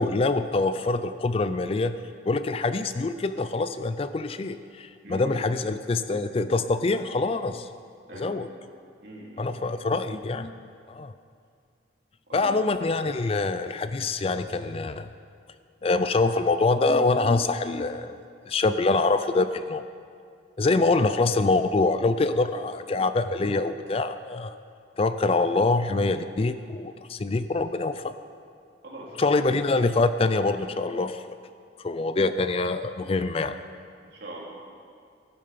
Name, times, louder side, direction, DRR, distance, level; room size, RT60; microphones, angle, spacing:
voice 1, 0.0-2.0 2.2-7.7 8.1-8.5 9.4-10.6 10.9-11.1 12.3-15.1 15.8-18.2 18.5-19.8 20.6-24.6 25.0-28.1 29.2-31.4 31.8-33.6, left 3 dB, 30° left, 11 dB, 0.4 m, -25 dB
voice 2, 5.0-5.4 8.1-8.5 9.0-9.6 12.3-12.6 28.8-29.5 34.0-34.5, right 1 dB, 60° right, -4 dB, 3.4 m, -41 dB
14.5 x 12.0 x 5.1 m, 2.3 s
head